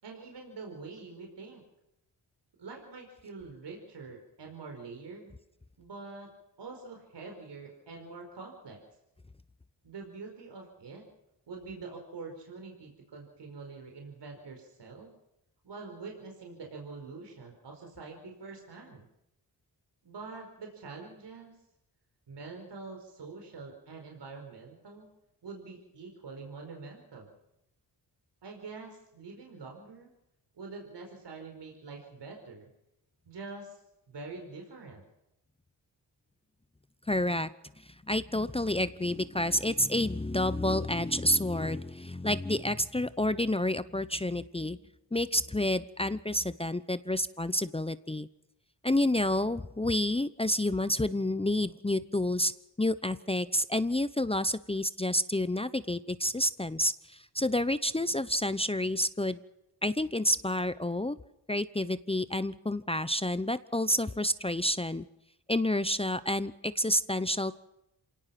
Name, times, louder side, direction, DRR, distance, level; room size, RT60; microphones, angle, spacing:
voice 1, 0.0-1.6 2.6-5.4 5.8-6.3 6.6-8.8 9.8-11.1 11.5-15.1 15.6-19.0 20.0-21.6 22.3-25.1 25.4-27.3 28.4-30.1 30.5-32.7 33.2-33.8 34.1-35.0, right 4 dB, 70° right, 2 dB, 5.0 m, -45 dB
voice 2, 37.1-37.5 37.8-44.8 45.1-48.3 48.8-52.5 52.8-59.4 59.8-61.2 61.5-65.1 65.5-67.6, left 1 dB, 15° left, 14 dB, 0.9 m, -29 dB
27.0 x 18.0 x 6.0 m, 0.84 s
cardioid pair, 60°, 43 cm